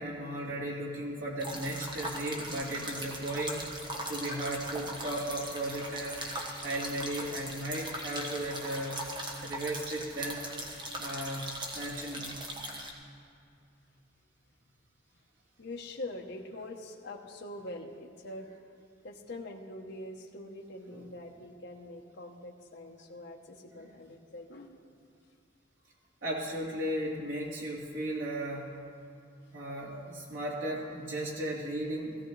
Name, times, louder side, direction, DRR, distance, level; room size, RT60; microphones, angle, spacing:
voice 1, 0.0-3.6 4.1-6.2 6.6-9.0 9.4-10.4 11.0-12.4 20.9-21.0 23.7-23.9 26.2-28.7 29.5-32.2, right 1 dB, 85° right, -7 dB, 3.5 m, -36 dB
sound 1, 1.4-12.9, right 1 dB, 25° right, 1.4 m, -40 dB
voice 2, 15.6-18.5 19.0-24.8, left 1 dB, 60° left, 0 dB, 1.0 m, -44 dB
17.0 x 15.5 x 3.2 m, 2.5 s
head